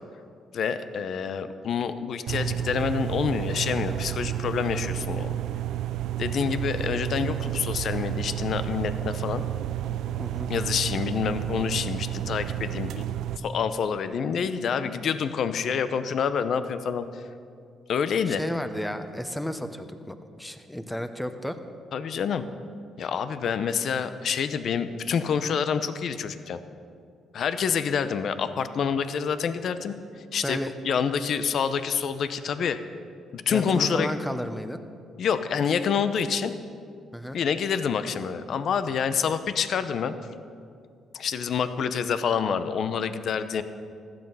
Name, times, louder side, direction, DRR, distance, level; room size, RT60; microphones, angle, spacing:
voice 1, 0.5-5.4 6.2-9.4 10.5-13.0 13.4-17.2 17.9-18.4 21.9-22.4 23.0-26.6 27.3-30.6 30.8-32.8 33.3-34.1 35.2-36.5 37.3-40.2 41.1-43.6, left 7 dB, 65° left, 11 dB, 0.8 m, -27 dB
sound 1, 2.3-13.4, right 12 dB, 85° right, 0.5 m, -31 dB
voice 2, 10.2-10.5 18.3-21.6 30.4-30.7 33.5-34.8 37.1-37.4, equal, 5° left, 9 dB, 1.0 m, -33 dB
15.5 x 12.0 x 5.6 m, 2.4 s
cardioid pair, 90°, 0 cm